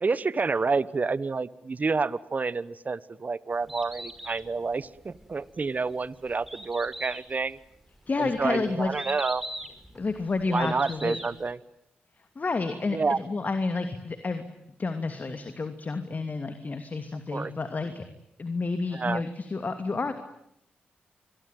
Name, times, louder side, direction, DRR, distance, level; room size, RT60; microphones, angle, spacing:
voice 1, 0.0-7.6 8.2-9.4 10.5-11.6 12.9-13.2 17.3-17.5 18.9-19.2, right 4 dB, 45° right, 19 dB, 1.2 m, -29 dB
Bird, 3.5-11.5, equal, 5° right, 5.5 m, -42 dB
voice 2, 8.1-8.9 9.9-11.2 12.3-14.4 14.8-18.1 18.4-20.1, left 3 dB, 45° left, 8 dB, 2.8 m, -30 dB
27.0 x 23.0 x 9.3 m, 0.75 s
supercardioid pair, 45°, 4 cm